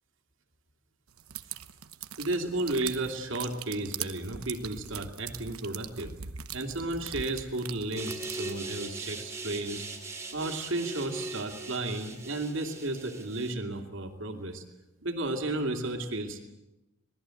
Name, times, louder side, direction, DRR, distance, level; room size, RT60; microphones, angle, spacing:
sound 1, 1.2-8.6, right 9 dB, 80° right, 1.0 m, -41 dB
voice 1, 2.2-6.2 6.5-9.9 10.3-14.6 15.0-16.4, right 2 dB, 60° right, 4 dB, 2.7 m, -33 dB
sound 2, 8.0-13.5, right 3 dB, 15° right, 2.7 m, -40 dB
25.5 x 19.5 x 7.8 m, 0.98 s
head